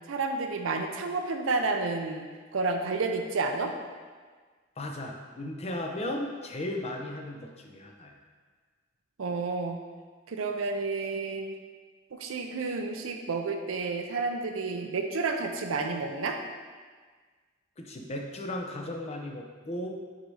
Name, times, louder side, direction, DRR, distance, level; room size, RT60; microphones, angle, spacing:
voice 1, 0.1-2.3 2.5-3.7 9.2-9.8 10.3-11.5 12.1-16.4, right 3 dB, 80° right, 4 dB, 0.5 m, -30 dB
voice 2, 4.8-8.1 17.8-20.0, left 1 dB, 30° left, 2 dB, 0.6 m, -36 dB
6.4 x 4.1 x 4.7 m, 1.5 s
head